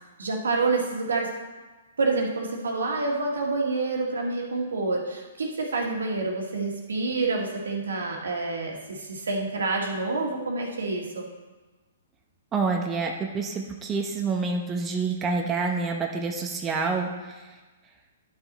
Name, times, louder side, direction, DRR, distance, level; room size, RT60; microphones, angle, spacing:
voice 1, 0.2-1.3 2.0-11.3, right 3 dB, 80° right, 0 dB, 1.9 m, -28 dB
voice 2, 12.5-17.6, right 4 dB, 20° right, 1 dB, 0.9 m, -28 dB
11.0 x 5.9 x 4.1 m, 1.2 s
hypercardioid pair, 125°, 0 cm